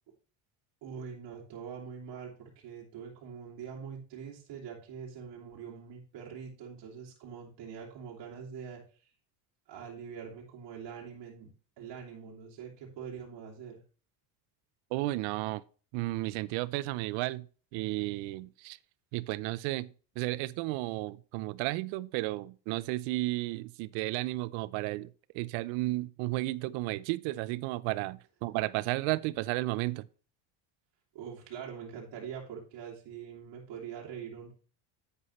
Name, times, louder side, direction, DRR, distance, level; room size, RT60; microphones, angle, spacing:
voice 1, 0.8-9.1 9.7-11.5 11.8-13.8 31.1-34.5, right 7 dB, 65° right, 2.8 m, -44 dB
voice 2, 14.9-15.6 15.9-17.5 17.7-18.8 19.1-30.1, right 19 dB, 80° right, 0.7 m, -33 dB
9.8 x 8.3 x 3.1 m
cardioid pair, 115°, 46 cm